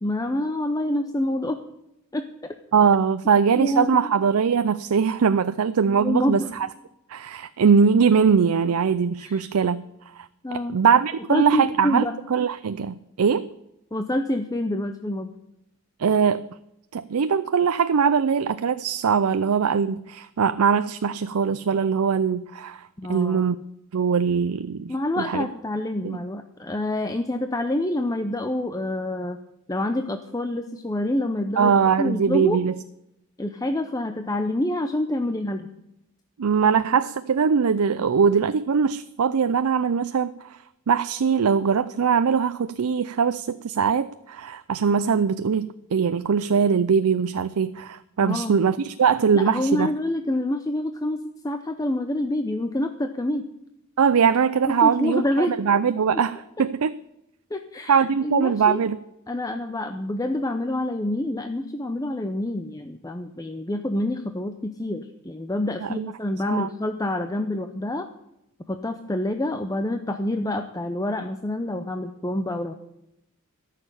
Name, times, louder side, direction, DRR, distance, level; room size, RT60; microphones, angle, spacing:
voice 1, 0.0-1.6 2.1-2.5 3.6-4.0 5.9-6.5 9.2-9.4 10.4-10.8 11.3-12.1 13.9-15.3 23.0-23.4 24.9-29.4 29.7-32.6 33.4-35.7 48.2-48.6 49.3-53.4 54.8-55.6 56.1-56.2 56.6-56.7 57.5-58.8 59.3-68.1 68.7-72.7, left 1 dB, 15° left, 6 dB, 0.6 m, -27 dB
voice 2, 2.7-6.7 7.1-9.8 10.2-13.5 16.0-16.5 16.9-23.6 23.9-25.5 26.0-26.2 31.6-32.7 36.4-40.6 40.9-49.9 54.0-57.0 57.9-59.0 65.8-66.1 66.5-66.7, right 6 dB, 90° right, 12 dB, 0.5 m, -21 dB
14.0 x 6.7 x 9.9 m, 0.84 s
head